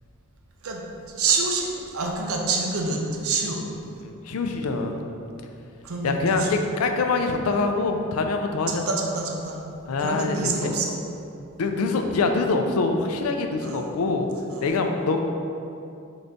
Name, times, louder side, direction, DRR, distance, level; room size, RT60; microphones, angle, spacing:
voice 1, 0.6-3.6 5.8-6.5 8.7-9.6 10.0-10.9 13.6-13.9 14.5-14.7, right 4 dB, 70° right, 1 dB, 0.6 m, -27 dB
voice 2, 4.0-5.0 6.0-8.8 9.9-10.7 11.6-14.3 14.6-15.2, left 3 dB, 85° left, 5 dB, 0.4 m, -24 dB
3.9 x 3.4 x 3.9 m, 2.6 s
head